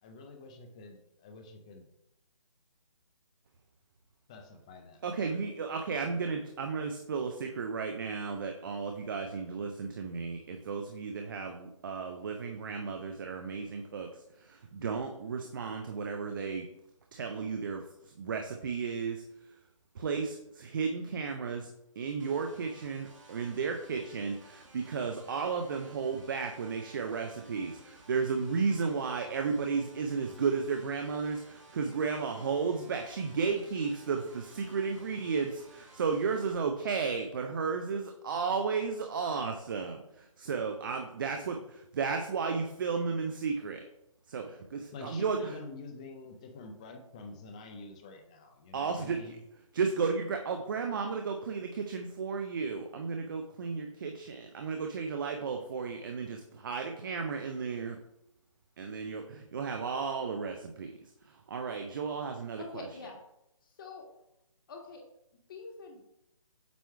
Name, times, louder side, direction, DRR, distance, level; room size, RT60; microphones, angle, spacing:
voice 1, 0.0-1.9 4.3-5.4 5.9-6.3 44.9-49.4, left 3 dB, 10° left, 5 dB, 0.4 m, -47 dB
voice 2, 5.0-16.7 17.1-19.2 20.0-21.7 22.0-41.6 41.9-43.8 44.3-45.6 48.7-49.4 49.7-58.0 58.8-60.9 61.2-62.9, right 5 dB, 40° right, 4 dB, 0.6 m, -33 dB
sound 1, 22.2-36.5, right 2 dB, 60° right, 1.9 m, -56 dB
voice 3, 62.6-63.2 63.6-64.1 64.7-65.0 65.5-66.0, left 4 dB, 40° left, 1 dB, 1.5 m, -45 dB
8.1 x 3.0 x 4.7 m, 0.82 s
figure-of-eight pair, 150°, 18 cm